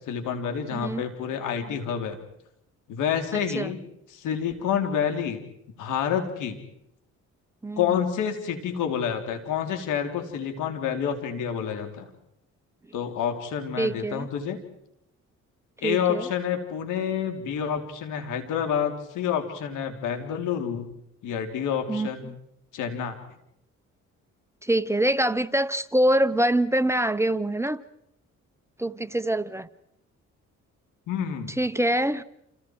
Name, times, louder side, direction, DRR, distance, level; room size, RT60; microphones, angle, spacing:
voice 1, 0.1-2.2 2.9-5.4 5.8-6.6 7.8-12.1 12.9-14.6 15.8-20.9 21.2-22.3 22.7-23.2 31.1-31.5, left 8 dB, 90° left, 3.4 m, -28 dB
voice 2, 0.7-1.0 3.3-3.7 7.6-7.9 13.8-14.3 15.8-16.3 21.9-22.1 24.6-27.8 28.8-29.7 31.6-32.2, right 1 dB, 10° right, 0.8 m, -24 dB
28.5 x 28.5 x 4.7 m
cardioid pair, 90°, 30 cm